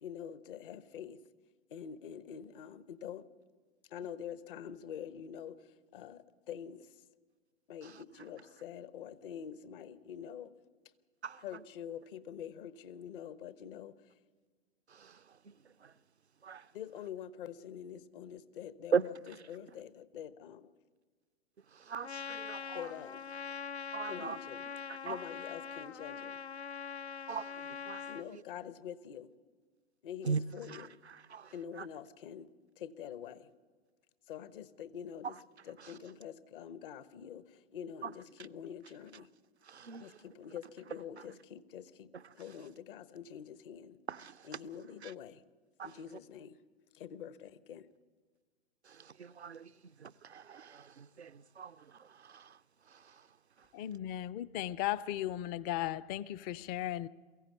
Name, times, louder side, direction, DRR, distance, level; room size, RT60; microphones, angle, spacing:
voice 1, 0.0-1.2 1.7-3.3 3.9-7.0 7.7-10.5 11.4-14.1 16.7-19.1 19.5-20.7 22.7-23.3 24.0-24.6 25.0-26.4 28.1-29.3 30.0-31.0 31.5-32.5 32.8-33.5 34.3-35.4 35.7-39.3 40.0-44.0 44.5-45.4 45.8-46.6 46.9-47.9, left 9 dB, 55° left, 1.1 m, -46 dB
voice 2, 11.2-11.6 14.9-16.0 16.4-16.7 18.9-19.4 21.6-22.9 23.9-24.4 24.9-25.3 27.3-28.4 30.2-31.9 35.2-35.4 35.8-36.0 38.0-38.1 39.6-40.3 41.2-41.3 42.1-42.3 44.1-44.5 45.0-45.1 45.8-46.0 48.8-53.7, right 6 dB, 90° right, 0.6 m, -41 dB
Trumpet, 22.0-28.3, left 7 dB, 85° left, 0.6 m, -43 dB
voice 3, 53.7-57.1, left 13 dB, 30° left, 0.5 m, -36 dB
22.5 x 15.5 x 8.3 m
figure-of-eight pair, 100°, 32 cm